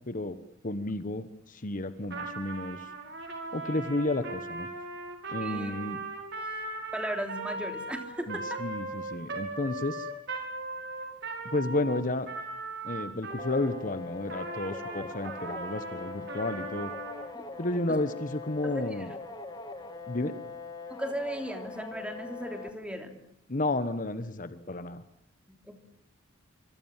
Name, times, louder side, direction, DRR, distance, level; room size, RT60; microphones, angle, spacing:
voice 1, 0.1-0.4 0.6-2.9 3.5-4.7 5.3-6.0 8.3-10.1 11.4-12.3 12.8-16.9 17.6-19.1 20.1-20.4 23.5-25.0, left 2 dB, 40° left, 11 dB, 1.2 m, -32 dB
Trumpet, 2.0-13.8 14.3-17.3, right 3 dB, 60° right, 5.8 m, -38 dB
voice 2, 5.4-5.7 6.9-8.6 17.3-17.4 17.9-18.0 18.6-19.1 20.9-23.2 25.5-25.8, equal, 5° right, 5 dB, 3.2 m, -37 dB
sound 1, 13.4-22.7, left 4 dB, 20° left, 2.8 m, -42 dB
25.5 x 25.5 x 7.4 m, 0.73 s
head